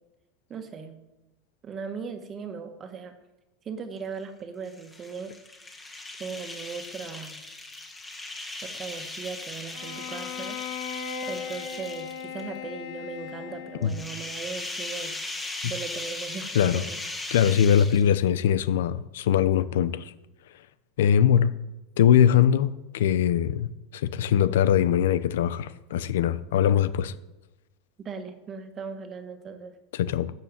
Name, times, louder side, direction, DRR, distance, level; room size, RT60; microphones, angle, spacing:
voice 1, 0.5-1.0 1.6-3.1 3.6-5.3 6.2-7.4 8.6-10.6 11.2-15.1 15.6-17.0 28.0-29.8, right 5 dB, 25° right, 1.7 m, -38 dB
sound 1, 4.7-12.4 13.8-18.3, left 2 dB, 10° left, 1.7 m, -38 dB
Bowed string instrument, 9.7-14.1, left 8 dB, 65° left, 2.3 m, -37 dB
voice 2, 17.3-20.1 21.0-21.5 22.0-23.7 23.9-27.1 29.9-30.3, left 9 dB, 90° left, 0.9 m, -22 dB
13.0 x 6.7 x 8.9 m
supercardioid pair, 155°, 0 cm